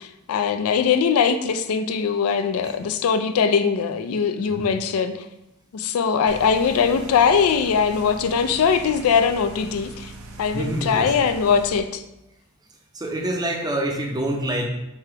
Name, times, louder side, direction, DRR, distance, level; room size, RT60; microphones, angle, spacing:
voice 1, 0.0-5.2 5.7-10.1 10.4-12.0, left 6 dB, 80° left, 9 dB, 0.4 m, -21 dB
sound 1, 6.3-11.8, right 2 dB, 80° right, 0.5 m, -40 dB
voice 2, 10.5-11.3 12.9-14.7, right 1 dB, 20° right, 1 dB, 0.5 m, -26 dB
3.3 x 2.8 x 4.5 m, 0.87 s
head